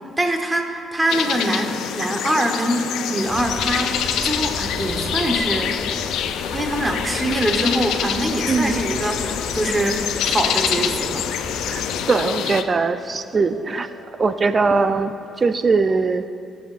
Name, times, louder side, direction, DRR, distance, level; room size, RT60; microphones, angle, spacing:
voice 1, 0.2-5.8 6.5-11.3, right 1 dB, 15° right, 3 dB, 1.1 m, -24 dB
sound 1, 1.1-12.6, left 9 dB, 85° left, 0.4 m, -26 dB
sound 2, 3.0-15.3, left 3 dB, 55° left, 1.6 m, -41 dB
sound 3, 3.3-12.1, left 1 dB, 25° left, 1.0 m, -35 dB
voice 2, 8.5-8.8 11.7-13.9 14.2-15.1 15.4-16.2, right 4 dB, 35° right, 10 dB, 0.4 m, -20 dB
16.5 x 7.1 x 2.5 m, 2.5 s
cardioid pair, 90°, 0 cm